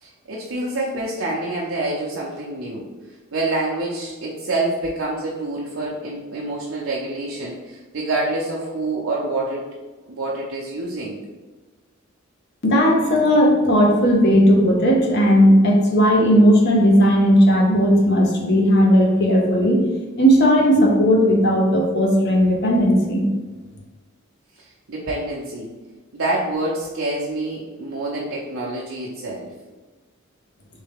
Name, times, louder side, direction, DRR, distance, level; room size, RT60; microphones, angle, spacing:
voice 1, 0.0-2.9 3.3-9.7 10.1-11.2 24.6-25.7 26.1-29.5, right 2 dB, 75° right, -5 dB, 0.6 m, -27 dB
voice 2, 12.6-19.9 20.2-23.2, equal, 55° left, 0 dB, 0.8 m, -16 dB
3.6 x 3.2 x 3.5 m, 1.2 s
head